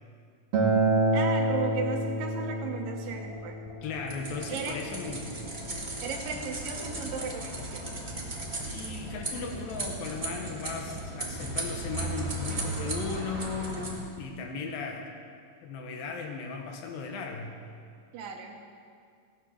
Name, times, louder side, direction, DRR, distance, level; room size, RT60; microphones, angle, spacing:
Acoustic guitar, 0.5-5.7, right 2 dB, 50° right, 2.4 m, -29 dB
voice 1, 1.1-3.6 4.5-4.8 6.0-7.9 18.1-18.6, right 5 dB, 80° right, 2 dB, 3.0 m, -36 dB
sound 1, 3.1-14.1, left 3 dB, 45° left, 3.2 m, -49 dB
voice 2, 3.8-5.4 6.3-6.4 8.6-15.1 15.6-17.5, left 4 dB, 90° left, 3 dB, 3.0 m, -37 dB
sound 2, 4.1-13.9, right 2 dB, 25° right, 1.1 m, -36 dB
17.0 x 8.9 x 6.4 m, 2.2 s
omnidirectional pair, 4.0 m